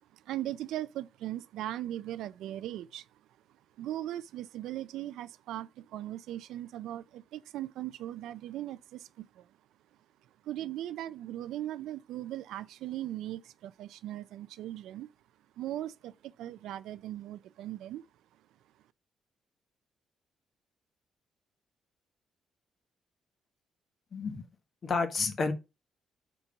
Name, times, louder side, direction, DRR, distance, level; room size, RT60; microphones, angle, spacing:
voice 1, 0.1-3.1 3.8-9.5 10.4-15.1 15.6-18.1, right 13 dB, 85° right, 0.4 m, -39 dB
voice 2, 24.1-24.4 24.8-25.5, left 4 dB, 45° left, 1.3 m, -30 dB
5.2 x 4.6 x 5.3 m
cardioid pair, 90°, 0 cm